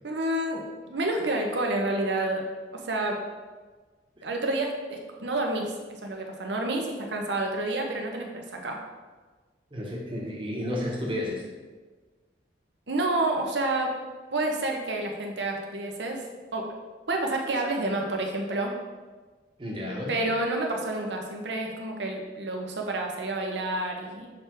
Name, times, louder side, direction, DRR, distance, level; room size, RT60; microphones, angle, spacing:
voice 1, 0.0-2.4 2.7-3.2 4.2-8.8 12.9-13.9 14.3-16.2 16.5-16.7 17.1-18.7 20.1-24.3, right 2 dB, 80° right, 2 dB, 0.9 m, -29 dB
voice 2, 9.7-11.4 19.6-20.2, left 1 dB, 30° right, -1 dB, 1.0 m, -32 dB
6.5 x 3.4 x 4.5 m, 1.4 s
head